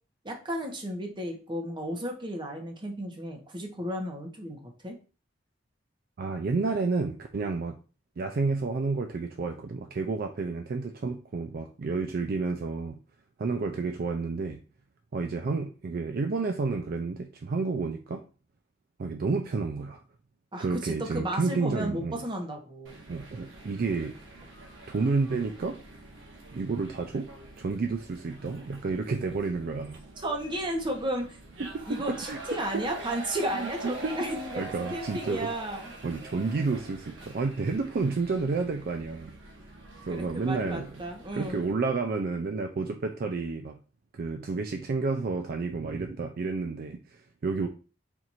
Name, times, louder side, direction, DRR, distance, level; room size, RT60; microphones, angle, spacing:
voice 1, 0.2-5.0 20.5-23.0 30.2-31.4 31.9-35.9 40.1-41.6, right 1 dB, 25° right, 2 dB, 0.9 m, -33 dB
voice 2, 6.2-7.8 8.2-13.0 13.4-14.6 15.1-18.3 19.0-20.0 20.6-22.2 23.1-24.1 24.9-25.8 26.5-27.3 27.6-30.0 31.6-32.4 32.7-32.8 33.5-34.3 34.6-35.5 36.0-39.3 40.0-40.9 41.3-43.8 44.1-47.7, right 4 dB, 55° right, 5 dB, 0.4 m, -30 dB
sound 1, 22.9-41.7, right 2 dB, 85° right, 1.3 m, -45 dB
4.4 x 2.5 x 4.1 m, 0.35 s
head